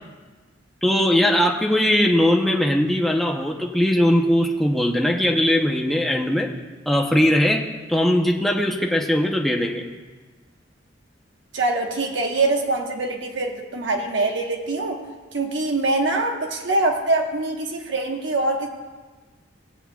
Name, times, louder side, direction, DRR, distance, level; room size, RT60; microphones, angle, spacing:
voice 1, 0.8-6.5 6.9-7.6 7.9-9.9, left 1 dB, ahead, 0 dB, 0.8 m, -20 dB
voice 2, 11.5-15.0 15.3-18.7, right 2 dB, 70° right, 2 dB, 1.3 m, -24 dB
17.5 x 8.7 x 2.4 m, 1.3 s
head